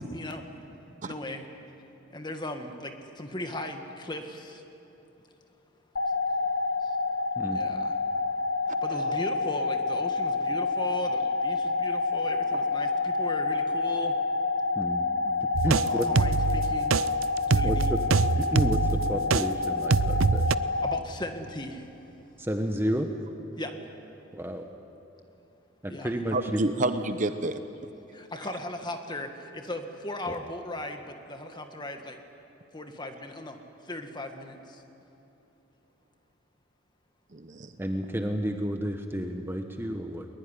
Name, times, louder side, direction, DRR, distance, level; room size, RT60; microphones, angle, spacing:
voice 1, 1.0-1.4 2.1-4.6 7.5-7.9 8.8-14.1 15.7-17.0 17.5-17.9 18.8-18.9 20.8-21.8 23.6-23.7 25.9-26.1 28.1-31.0 31.3-32.1 32.7-33.5 33.9-34.6, left 1 dB, 20° left, 5 dB, 1.7 m, -37 dB
sound 1, 6.0-21.0, left 3 dB, 65° left, 0.9 m, -28 dB
voice 2, 8.9-9.2 15.2-15.4 26.3-27.6 37.3-37.7, right 2 dB, 40° right, 9 dB, 0.9 m, -30 dB
sound 2, 15.5-19.5 19.9-20.6, right 4 dB, 85° right, 0.6 m, -24 dB
voice 3, 15.6-16.1 17.6-18.0 18.4-20.5 22.4-23.1 24.3-24.7 25.8-26.6 30.3-30.4 37.8-40.3, equal, 10° right, 5 dB, 1.0 m, -30 dB
21.5 x 21.5 x 9.9 m, 2.8 s
head